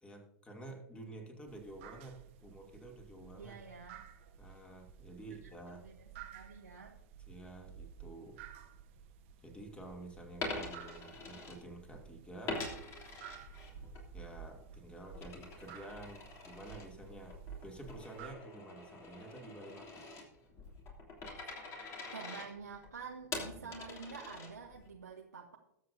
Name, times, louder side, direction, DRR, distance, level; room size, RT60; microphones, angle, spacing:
voice 1, 0.0-3.6 4.4-5.8 7.3-8.5 9.4-12.7 14.1-17.3 17.6-20.1 23.5-23.7, right 1 dB, 10° left, 2 dB, 2.6 m, -50 dB
sound 1, 1.5-18.3, right 9 dB, 50° right, 1.3 m, -53 dB
voice 2, 3.4-4.0 5.7-7.0 22.1-25.6, right 5 dB, 75° right, 0 dB, 1.2 m, -48 dB
Coin (dropping), 10.3-12.0 12.5-14.0 14.4-24.9, left 3 dB, 30° left, 3.2 m, -45 dB
20.5 x 7.9 x 2.7 m, 0.83 s
figure-of-eight pair, 95°, 9 cm